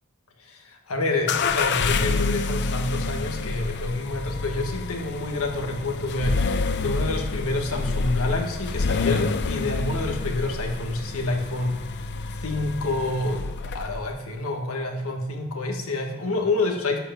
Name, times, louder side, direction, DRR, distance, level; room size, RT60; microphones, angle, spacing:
voice 1, 0.4-11.8 12.3-17.0, left 2 dB, 85° left, 2 dB, 1.6 m, -28 dB
sound 1, 1.3-14.1, left 4 dB, 55° left, 0.5 m, -28 dB
11.0 x 4.8 x 7.4 m, 1.1 s
head